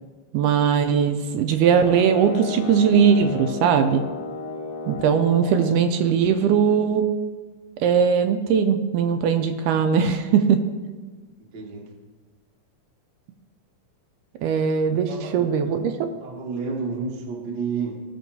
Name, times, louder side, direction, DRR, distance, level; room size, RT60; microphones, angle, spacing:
voice 1, 0.3-4.0 4.9-7.1 7.8-10.6 14.4-16.1, right 7 dB, 80° right, 7 dB, 2.0 m, -20 dB
sound 1, 1.6-5.9, left 4 dB, 70° left, 2.1 m, -34 dB
voice 2, 11.4-11.9 14.9-15.5 15.8-15.9 16.2-18.0, right 5 dB, 65° right, 0 dB, 1.0 m, -31 dB
17.0 x 6.3 x 2.7 m, 1.3 s
omnidirectional pair, 3.9 m